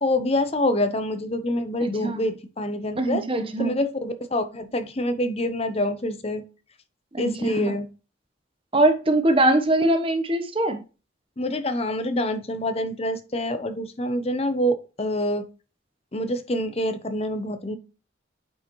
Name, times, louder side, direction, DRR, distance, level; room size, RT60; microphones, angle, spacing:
voice 1, 0.0-3.2 3.6-6.4 7.2-7.9 11.4-15.5 16.1-17.8, left 1 dB, 30° left, 0.8 m, -26 dB
voice 2, 3.0-3.8 7.1-7.7 8.7-10.8, right 1 dB, 30° right, 1.0 m, -22 dB
8.8 x 5.0 x 3.1 m
head